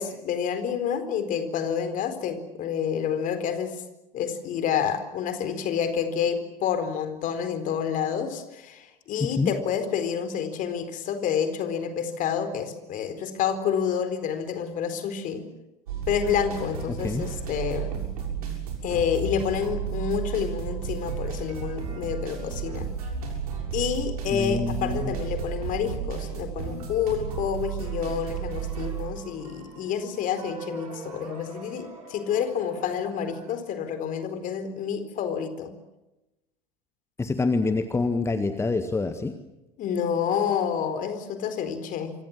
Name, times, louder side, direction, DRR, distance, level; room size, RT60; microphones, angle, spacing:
voice 1, 0.0-3.8 4.1-15.5 16.1-18.1 18.8-22.9 23.7-35.7 39.8-42.1, left 7 dB, 40° left, 10 dB, 4.3 m, -28 dB
voice 2, 9.2-9.5 17.0-17.2 24.3-25.2 37.2-39.4, left 3 dB, 15° left, 9 dB, 1.8 m, -26 dB
sound 1, 15.9-33.5, right 7 dB, 65° right, 6.9 m, -34 dB
27.5 x 25.0 x 7.5 m, 0.98 s
figure-of-eight pair, 75°, 20 cm